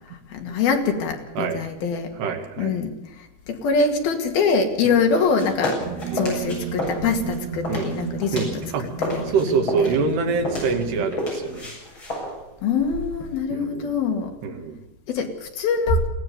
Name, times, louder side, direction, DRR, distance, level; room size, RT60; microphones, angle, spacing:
voice 1, 0.1-2.1 2.6-5.8 6.1-10.0 12.6-14.3 15.1-16.1, left 5 dB, 70° left, 4 dB, 3.9 m, -24 dB
voice 2, 2.2-2.7 4.9-5.0 6.1-6.2 7.7-7.9 8.3-8.8 9.3-11.7 13.5-13.9 14.4-14.8, right 5 dB, 80° right, 4 dB, 4.1 m, -25 dB
sound 1, 5.1-8.7 8.9-13.4, left 1 dB, 30° left, 8.4 m, -31 dB
sound 2, 5.8-11.1, right 7 dB, 50° right, 2.7 m, -33 dB
22.0 x 17.5 x 7.0 m, 0.94 s
omnidirectional pair, 4.6 m